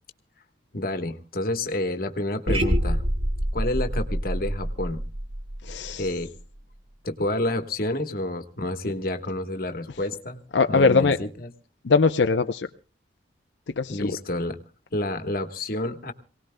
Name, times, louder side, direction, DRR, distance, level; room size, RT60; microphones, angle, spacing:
voice 1, 0.7-3.0 3.5-5.0 6.0-6.3 7.0-10.4 10.7-11.5 13.9-14.6 14.9-16.1, left 1 dB, 55° left, 7 dB, 1.3 m, -29 dB
sound 1, 2.5-6.6, equal, 35° right, 2.6 m, -27 dB
voice 2, 5.6-6.1 10.5-11.2 11.8-12.7 13.8-14.2, left 4 dB, 85° left, 6 dB, 0.6 m, -21 dB
27.0 x 18.5 x 2.2 m, 0.36 s
head